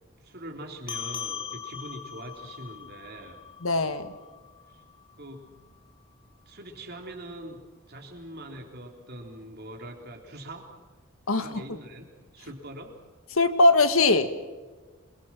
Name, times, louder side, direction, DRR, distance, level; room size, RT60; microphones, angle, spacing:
voice 1, 0.2-3.4 4.7-4.8 5.2-5.5 6.5-7.6 7.9-10.7 11.4-13.0, right 1 dB, 45° right, 2 dB, 3.9 m, -42 dB
sound 1, 0.9-5.7, left 7 dB, 20° left, 1.2 m, -40 dB
voice 2, 3.6-4.1 11.3-11.6 13.3-14.3, left 2 dB, 80° left, 9 dB, 1.7 m, -21 dB
27.5 x 22.5 x 6.2 m, 1.3 s
head